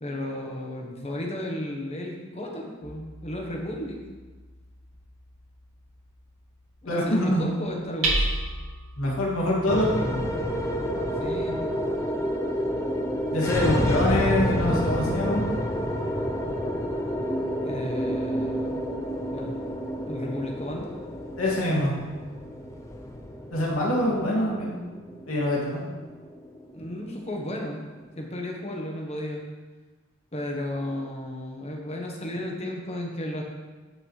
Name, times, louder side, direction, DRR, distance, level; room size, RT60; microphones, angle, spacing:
voice 1, 0.0-4.0 6.8-8.3 11.2-11.6 13.8-14.4 14.7-15.0 17.6-18.8 19.3-19.6 20.0-21.0 26.7-27.8 28.2-29.4 30.3-33.4, left 1 dB, 30° left, 0 dB, 1.3 m, -34 dB
Hammer, 2.8-14.5, right 2 dB, 85° right, 2.1 m, -36 dB
voice 2, 6.8-7.4 9.0-10.2 13.3-15.4 21.4-21.9 23.5-24.8 25.3-25.8, left 1 dB, 80° left, -4 dB, 2.5 m, -25 dB
sound 1, 9.7-28.1, equal, 15° left, 0.7 m, -29 dB
15.0 x 5.9 x 3.3 m, 1.3 s
head